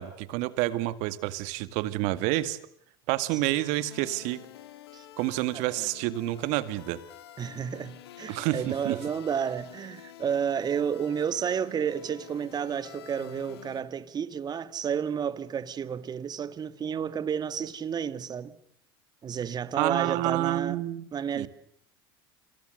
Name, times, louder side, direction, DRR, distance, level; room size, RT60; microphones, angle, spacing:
voice 1, 0.0-2.6 3.1-4.4 5.2-7.0 8.3-9.0 19.8-21.1 21.3-21.5, right 16 dB, 65° right, 2.0 m, -28 dB
sound 1, 3.6-13.8, left 12 dB, 80° left, 2.2 m, -49 dB
voice 2, 7.4-18.6 19.2-20.8 21.1-21.5, right 7 dB, 30° right, 1.9 m, -31 dB
28.5 x 26.5 x 6.6 m
hypercardioid pair, 85°, 13 cm